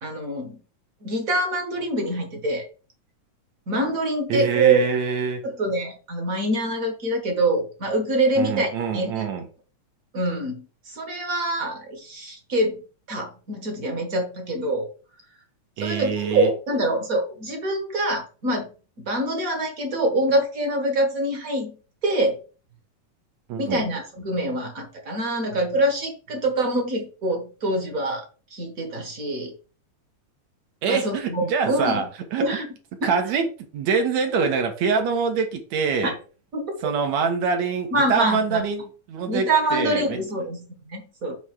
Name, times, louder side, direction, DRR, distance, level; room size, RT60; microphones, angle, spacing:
voice 1, 0.0-0.6 1.0-2.6 3.7-4.9 5.4-9.3 10.1-12.8 13.1-14.8 15.8-18.7 19.0-21.8 22.0-22.3 23.6-28.2 28.5-29.5 30.9-32.0 32.4-32.7 33.0-33.1 36.0-36.1 36.5-36.6 37.9-38.6 39.3-41.3, right 1 dB, 40° right, 3 dB, 1.3 m, -25 dB
voice 2, 4.3-5.4 8.4-9.5 15.8-16.5 23.5-23.9 30.8-32.4 33.0-33.5 33.7-36.2 36.8-40.2, right 5 dB, 70° right, 5 dB, 2.5 m, -25 dB
7.0 x 3.3 x 6.2 m, 0.36 s
omnidirectional pair, 3.4 m